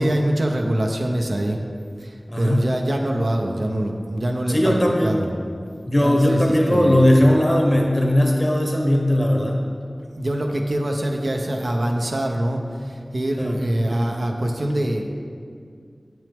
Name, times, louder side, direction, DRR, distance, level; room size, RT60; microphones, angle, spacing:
voice 1, 0.0-1.6 2.0-4.7 5.0-5.3 6.0-7.0 10.2-15.1, right 1 dB, 70° right, 2 dB, 0.7 m, -24 dB
voice 2, 2.3-2.7 4.5-5.2 5.9-9.6 13.4-13.6, left 1 dB, 30° left, 0 dB, 1.1 m, -18 dB
7.5 x 6.2 x 3.5 m, 2.2 s
wide cardioid pair, 45°, 0 cm